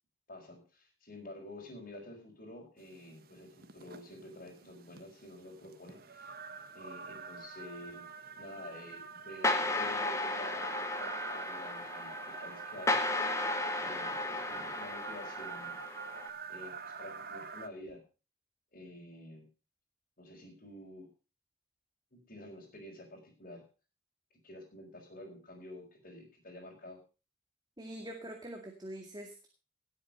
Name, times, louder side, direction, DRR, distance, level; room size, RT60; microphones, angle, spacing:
voice 1, 0.3-6.3 6.7-13.3 13.8-15.8 16.5-18.0 18.7-19.5 20.2-21.1 22.1-23.6 24.4-27.0, left 1 dB, 45° left, -5 dB, 4.8 m, -49 dB
sound 1, 2.8-17.7, right 5 dB, 50° right, 1.2 m, -45 dB
sound 2, 9.4-16.3, left 2 dB, 15° left, 1.7 m, -34 dB
voice 2, 27.8-29.5, right 1 dB, 20° right, 3 dB, 2.0 m, -44 dB
18.5 x 8.4 x 5.3 m, 0.35 s
head